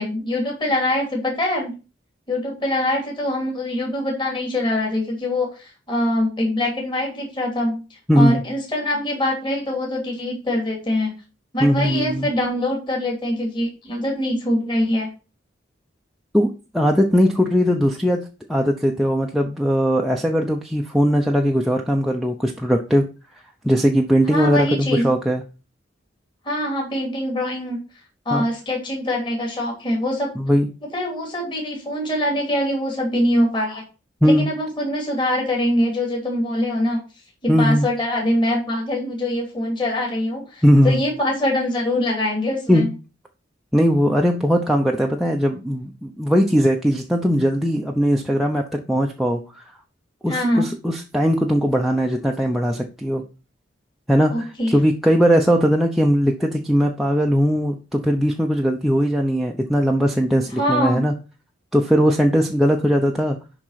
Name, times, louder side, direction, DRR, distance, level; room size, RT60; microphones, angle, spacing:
voice 1, 0.0-1.8 2.3-11.1 11.5-15.1 24.3-25.1 26.4-27.8 28.2-30.3 30.9-33.8 34.2-37.0 37.4-42.9 50.3-50.7 54.3-54.8 60.5-61.1, left 1 dB, 25° left, -1 dB, 3.0 m, -23 dB
voice 2, 8.1-8.4 11.6-12.3 16.3-16.5 16.7-23.0 23.6-25.4 28.3-28.4 30.4-30.7 34.2-34.5 37.5-37.9 40.6-41.0 42.7-42.8 43.7-49.6 50.2-53.2 54.1-61.1 61.7-63.4, equal, ahead, 0 dB, 0.8 m, -19 dB
11.0 x 4.0 x 5.8 m, 0.32 s
head